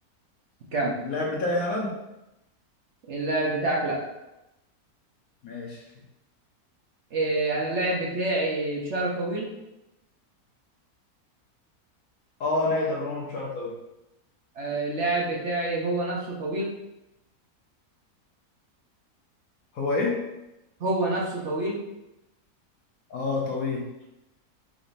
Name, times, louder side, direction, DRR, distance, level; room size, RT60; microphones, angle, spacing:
voice 1, 1.0-1.9 5.4-5.8 12.4-13.7 19.7-20.2 23.1-23.9, left 2 dB, 70° left, -2 dB, 1.2 m, -27 dB
voice 2, 3.1-4.0 7.1-9.5 14.5-16.7 20.8-21.8, right 2 dB, 55° right, -3 dB, 1.1 m, -27 dB
5.0 x 3.6 x 2.6 m, 0.93 s
omnidirectional pair, 1.6 m